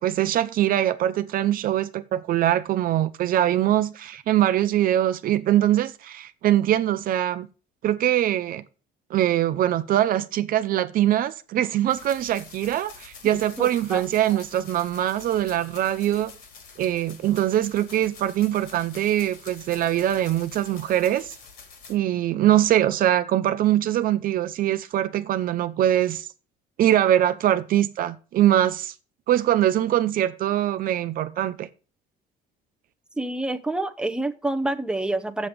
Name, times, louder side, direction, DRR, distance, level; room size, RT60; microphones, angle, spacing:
voice 1, 0.0-7.5 7.8-8.6 9.1-16.3 16.8-21.3 21.9-26.3 26.8-28.9 29.3-31.7, right 12 dB, 55° right, 0.6 m, -22 dB
sound 1, 11.9-22.0, left 5 dB, 60° left, 3.1 m, -46 dB
voice 2, 13.3-14.0 33.2-35.5, right 2 dB, 5° right, 0.8 m, -28 dB
7.3 x 6.8 x 6.5 m
cardioid pair, 110°, 18 cm